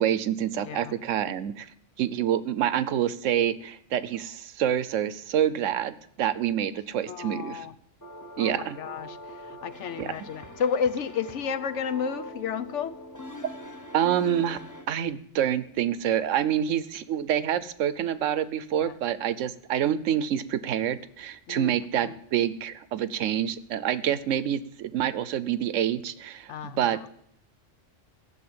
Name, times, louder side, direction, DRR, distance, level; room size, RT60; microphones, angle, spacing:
voice 1, 0.0-1.7 2.0-7.7 8.4-8.8 10.0-10.1 13.9-14.6 14.9-27.0, right 10 dB, 80° right, 15 dB, 1.0 m, -27 dB
voice 2, 0.6-0.9 7.1-7.7 8.4-13.0 18.7-18.9 21.5-21.8 22.0-22.1 26.5-27.0, left 7 dB, 75° left, 14 dB, 1.0 m, -32 dB
sound 1, 8.0-14.9, left 1 dB, 15° left, 1.0 m, -42 dB
15.0 x 7.0 x 8.7 m, 0.71 s
omnidirectional pair, 1.3 m